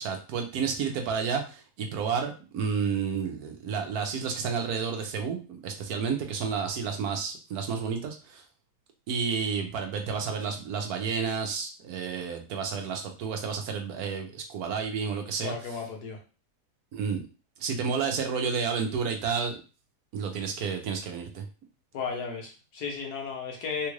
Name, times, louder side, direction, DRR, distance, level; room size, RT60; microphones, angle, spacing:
voice 1, 0.0-8.4 9.1-15.5 16.9-17.3 17.6-19.6 20.1-21.4, right 6 dB, 70° right, 5 dB, 1.1 m, -31 dB
voice 2, 15.4-16.2 21.9-23.9, left 5 dB, 75° left, 1 dB, 1.4 m, -34 dB
3.5 x 2.4 x 3.1 m, 0.34 s
omnidirectional pair, 1.7 m